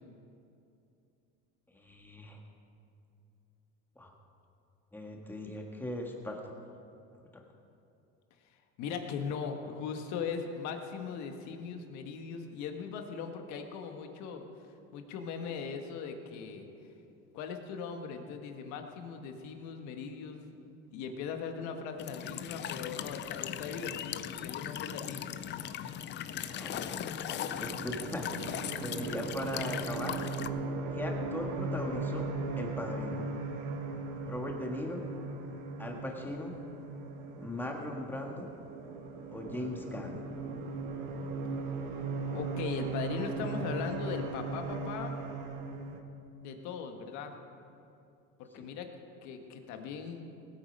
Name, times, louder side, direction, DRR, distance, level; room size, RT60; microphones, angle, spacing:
voice 1, 1.7-2.4 3.9-4.1 4.9-6.4 7.2-7.4 26.4-27.0 27.6-28.5 28.8-30.2 30.9-32.2 32.6-33.2 34.3-35.0 35.8-36.5 37.4-38.4 39.3-40.2 48.6-48.7, left 1 dB, 5° left, 1 dB, 1.7 m, -39 dB
voice 2, 8.8-14.4 14.9-16.7 17.3-20.4 20.9-25.4 42.3-45.1 46.4-47.3 48.4-48.9 49.2-50.2, left 6 dB, 65° left, 5 dB, 1.5 m, -39 dB
Walk footsteps / Chirp tweet / Stream, 22.0-30.5, left 10 dB, 35° left, 0.5 m, -38 dB
sound 1, 26.5-46.0, right 3 dB, 75° right, 1.4 m, -38 dB
19.0 x 8.6 x 5.3 m, 2.6 s
cardioid pair, 130°, 31 cm